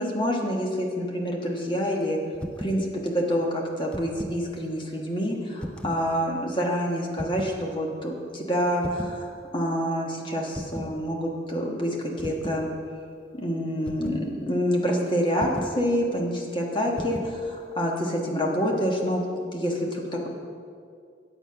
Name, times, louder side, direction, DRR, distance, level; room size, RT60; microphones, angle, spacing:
voice 1, 0.0-2.2 2.6-12.7 13.3-19.3 19.5-20.3, equal, 25° left, -1 dB, 1.3 m, -27 dB
sound 1, 2.3-2.8 3.7-4.4 5.6-6.1 7.1-7.6 8.8-9.2 10.5-11.0 12.2-12.6 13.9-14.3 15.4-15.8 17.0-17.4, equal, 5° left, 0.4 m, -35 dB
9.1 x 8.0 x 5.7 m, 2.3 s
head